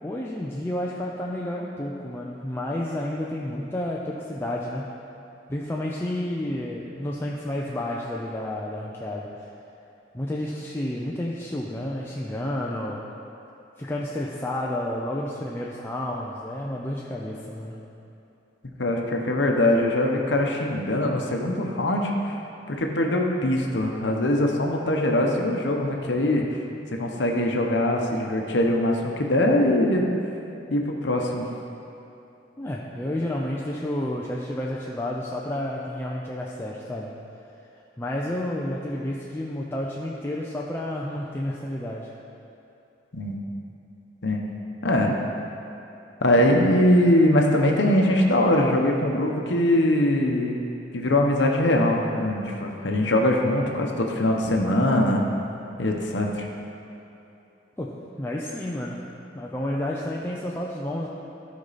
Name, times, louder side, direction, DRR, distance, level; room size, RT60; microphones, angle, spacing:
voice 1, 0.0-4.9 5.5-9.5 10.1-13.0 13.8-17.9 32.6-37.2 38.0-42.1 57.8-59.1 59.3-61.1, left 1 dB, 15° left, -4 dB, 0.5 m, -30 dB
voice 2, 18.8-22.1 22.7-26.4 26.9-30.0 30.7-31.4 43.1-43.4 44.2-44.4 44.8-45.2 46.2-50.6 50.9-55.2 55.8-56.5, left 1 dB, 70° left, 1 dB, 0.9 m, -22 dB
13.0 x 5.3 x 4.1 m, 2.9 s
head